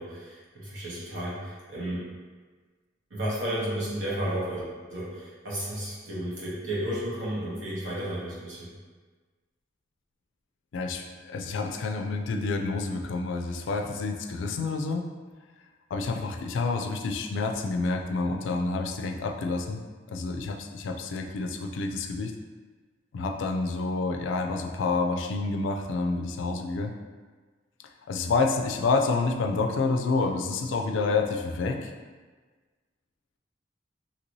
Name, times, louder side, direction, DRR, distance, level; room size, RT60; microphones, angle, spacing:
voice 1, 0.0-2.1 3.1-8.7, right 1 dB, 90° right, -7 dB, 1.1 m, -33 dB
voice 2, 10.7-15.1 15.9-19.8 20.1-22.3 23.1-26.9 28.1-31.9, left 3 dB, 80° left, 3 dB, 0.3 m, -28 dB
2.9 x 2.7 x 3.0 m, 1.4 s
head